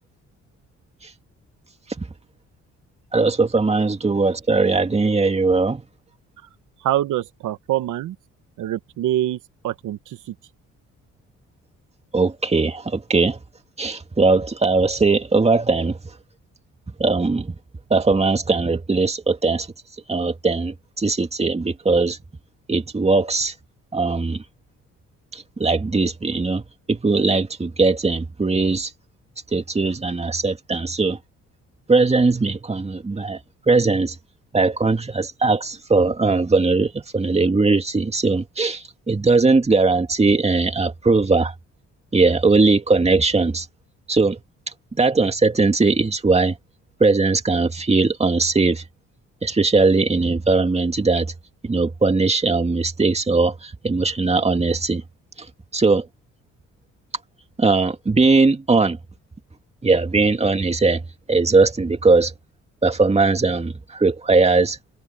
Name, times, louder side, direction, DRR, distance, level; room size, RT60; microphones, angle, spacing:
voice 1, 3.1-5.8 12.1-13.4 13.8-16.2 17.0-17.6 17.9-19.7 20.1-22.2 22.7-23.5 23.9-24.4 25.3-28.9 29.5-31.2 31.9-33.4 33.7-34.2 34.5-41.5 42.1-43.7 44.1-44.4 44.9-46.6 47.0-48.8 49.4-51.3 51.6-55.0 55.4-55.5 55.7-56.1 57.6-59.0 59.8-61.0 61.3-62.3 62.8-64.8, right 3 dB, 20° right, 2.3 m, -19 dB
voice 2, 6.8-8.1 8.6-9.4 9.6-10.3, right 13 dB, 85° right, 1.4 m, -25 dB
cardioid pair, 90°, 30 cm